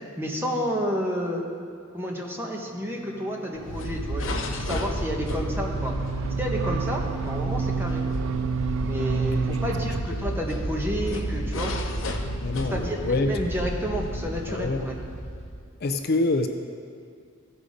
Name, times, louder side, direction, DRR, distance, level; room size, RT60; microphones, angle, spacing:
voice 1, 0.2-1.5 1.9-5.9 6.4-8.0 8.8-11.7 12.7-15.0, equal, 10° right, -1 dB, 1.1 m, -30 dB
sound 1, 3.0-10.0, right 6 dB, 75° right, 0.3 m, -31 dB
candy machine, 3.6-15.7, equal, 70° left, 0.8 m, -31 dB
voice 2, 12.4-13.3 14.5-14.8 15.8-16.5, left 2 dB, 50° left, 7 dB, 0.5 m, -25 dB
15.5 x 5.5 x 5.0 m, 2.2 s
head